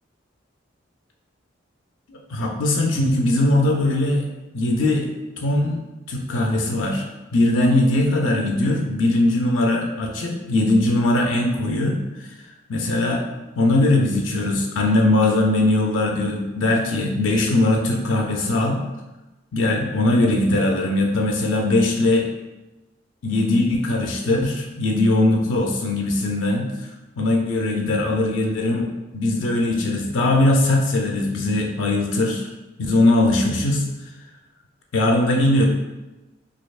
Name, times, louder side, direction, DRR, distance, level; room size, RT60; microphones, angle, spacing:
voice 1, 2.1-4.3 4.5-5.1 5.4-7.0 7.3-12.0 12.7-13.2 13.6-18.8 19.5-22.3 23.2-26.9 27.2-28.9 29.1-32.5 32.8-33.9 34.9-35.7, left 2 dB, 80° left, 1 dB, 0.4 m, -20 dB
4.2 x 2.6 x 2.3 m, 1.1 s
head